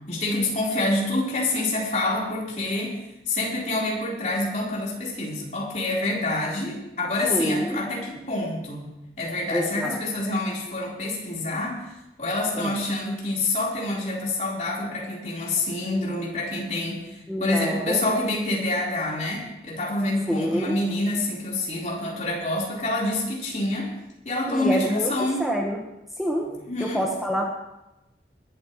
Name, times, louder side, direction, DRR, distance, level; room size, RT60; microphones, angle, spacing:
voice 1, 0.1-8.9 9.2-11.9 12.2-24.0 24.2-25.4 26.4-27.1, left 2 dB, 40° left, -4 dB, 4.1 m, -27 dB
voice 2, 7.3-7.8 9.5-10.0 12.5-12.8 17.3-18.2 20.3-20.8 24.5-25.8 26.2-26.5 26.8-27.5, equal, ahead, -1 dB, 1.2 m, -27 dB
22.0 x 12.5 x 3.1 m, 0.94 s
head